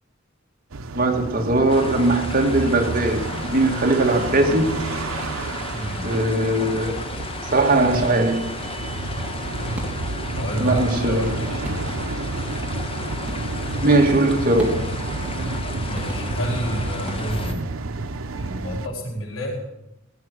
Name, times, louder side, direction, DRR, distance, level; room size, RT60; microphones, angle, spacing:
sound 1, 0.7-18.9, right 3 dB, 85° right, 0.8 m, -30 dB
voice 1, 0.9-3.3 3.5-4.8 6.0-6.9 7.4-8.5 10.6-11.3 13.8-14.7, right 2 dB, 45° right, 2 dB, 2.0 m, -19 dB
sound 2, 1.7-17.5, left 3 dB, 30° left, 1.2 m, -35 dB
voice 2, 5.7-6.1 10.3-11.6 15.8-17.6 18.3-19.6, equal, 80° left, -1 dB, 4.6 m, -29 dB
sound 3, 7.9-8.3 9.7-10.3 11.3-11.4 11.6-12.3 13.3-13.7 14.6-15.1 15.9-16.6 17.1-17.7, equal, 5° right, 3.0 m, -38 dB
16.5 x 9.6 x 6.3 m, 0.92 s
head